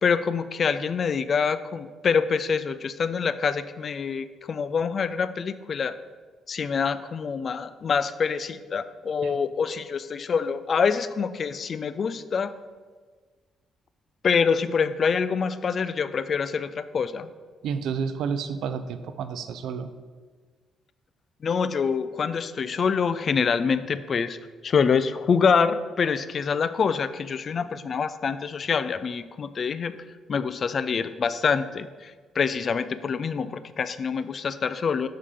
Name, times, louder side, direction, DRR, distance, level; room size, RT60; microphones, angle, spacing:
voice 1, 0.0-5.9 6.5-12.5 14.2-17.3 21.4-24.4 24.6-29.9 30.3-35.1, left 6 dB, 50° left, 13 dB, 0.3 m, -25 dB
voice 2, 17.6-19.9, right 6 dB, 80° right, 11 dB, 0.4 m, -30 dB
6.8 x 3.7 x 4.9 m, 1.4 s
cardioid pair, 90°, 0 cm